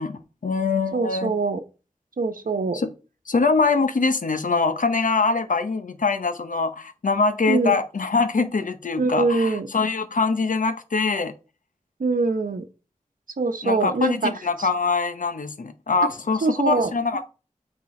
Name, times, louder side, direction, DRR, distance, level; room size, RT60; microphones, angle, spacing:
voice 1, 0.0-1.3 2.7-2.9 3.3-11.3 13.6-17.2, left 4 dB, 75° left, 0.8 m, -23 dB
voice 2, 0.9-1.6 2.2-2.8 7.5-7.8 9.0-9.7 12.0-12.7 13.4-14.3 14.6-14.7 16.0-16.1 16.4-16.9, right 3 dB, 90° right, 0.9 m, -23 dB
8.1 x 3.9 x 4.3 m
wide cardioid pair, 75°, 14 cm